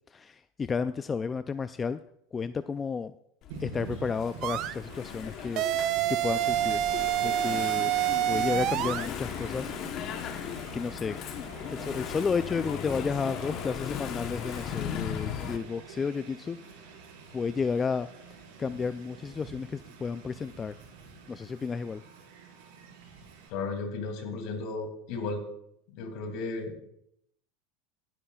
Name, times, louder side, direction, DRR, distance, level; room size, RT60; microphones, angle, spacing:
voice 1, 0.1-2.0 2.3-3.1 3.6-5.6 6.1-6.8 7.2-7.9 8.3-9.7 10.7-11.2 11.7-16.6 17.3-18.1 18.6-20.7 21.3-22.0, left 5 dB, 20° left, 12 dB, 0.3 m, -32 dB
Engine / Mechanisms, 3.4-15.6, left 9 dB, 45° left, 0.9 m, -37 dB
Train, 3.5-23.5, right 4 dB, 70° right, 4.5 m, -47 dB
sound 1, 4.4-4.7 5.6-9.1, right 14 dB, 50° right, 0.4 m, -27 dB
voice 2, 23.5-25.4 25.9-26.8, left 3 dB, 65° left, 4 dB, 2.6 m, -34 dB
16.5 x 10.0 x 2.3 m, 0.75 s
supercardioid pair, 115°, 0 cm